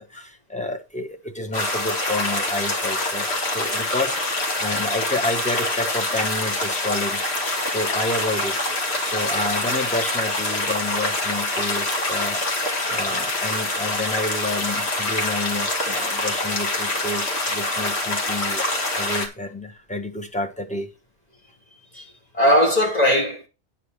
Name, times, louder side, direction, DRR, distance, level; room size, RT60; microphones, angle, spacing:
voice 1, 0.0-7.2 7.7-12.6 12.9-20.9, left 2 dB, 5° left, 1.2 m, -30 dB
sound 1, 1.5-19.3, left 2 dB, 70° left, 2.2 m, -25 dB
voice 2, 21.9-23.5, equal, 35° left, 2.9 m, -19 dB
9.5 x 4.2 x 6.6 m
omnidirectional pair, 1.1 m